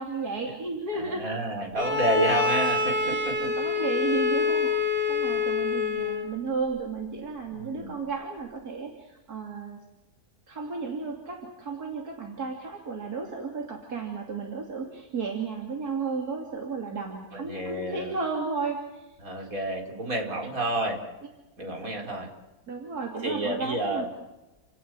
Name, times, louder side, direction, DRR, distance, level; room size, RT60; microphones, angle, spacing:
voice 1, 0.0-1.2 3.1-9.8 10.5-19.1 19.4-19.5 22.7-24.1, right 4 dB, 80° right, 0 dB, 3.5 m, -33 dB
voice 2, 0.9-3.5 7.5-7.9 17.3-18.1 19.2-21.0 21.6-22.3 23.2-24.1, right 1 dB, 65° right, 1 dB, 5.1 m, -30 dB
Bowed string instrument, 1.8-6.4, left 4 dB, 40° right, 2.4 m, -26 dB
30.0 x 18.0 x 7.7 m, 1.1 s
omnidirectional pair, 1.6 m